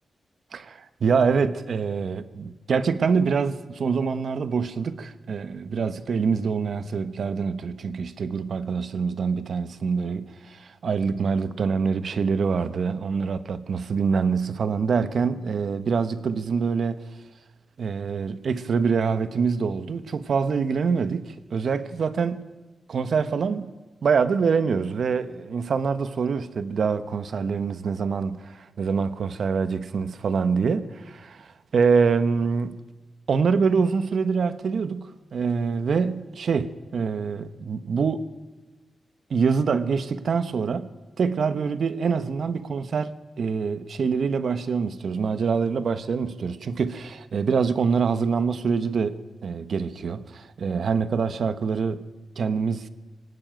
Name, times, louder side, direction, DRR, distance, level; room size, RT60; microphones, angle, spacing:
voice 1, 0.5-17.0 17.8-22.4 22.9-23.7 24.0-32.7 33.3-38.2 39.3-52.0 52.4-52.8, right 5 dB, 55° right, 1.1 m, -25 dB
22.5 x 18.0 x 9.2 m
wide cardioid pair, 180°, 0 cm